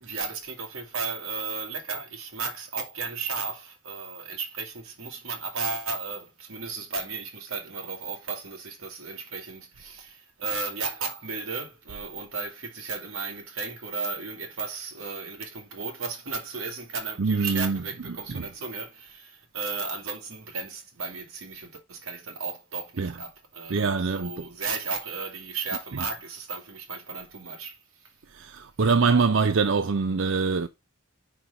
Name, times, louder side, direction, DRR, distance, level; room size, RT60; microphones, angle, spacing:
voice 1, 0.0-28.1, right 4 dB, 85° right, 2.1 m, -34 dB
voice 2, 17.2-18.5 23.0-23.2 23.7-24.4 25.9-26.1 28.3-30.7, right 4 dB, 60° right, 0.5 m, -25 dB
5.4 x 4.5 x 5.6 m
head